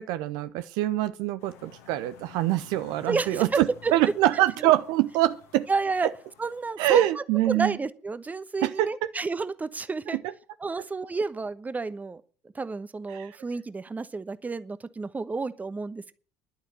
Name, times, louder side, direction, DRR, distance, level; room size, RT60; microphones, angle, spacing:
voice 1, 0.0-5.7 6.8-7.8 8.6-8.9 13.1-13.3, right 14 dB, 60° right, 0.7 m, -24 dB
sound 1, 1.4-6.7, left 9 dB, 70° left, 2.1 m, -52 dB
voice 2, 3.1-3.9 4.6-4.7 5.7-6.1 6.4-10.2 10.6-12.2 12.5-16.1, right 4 dB, 20° right, 1.1 m, -31 dB
11.5 x 9.1 x 9.1 m
figure-of-eight pair, 60°, 8 cm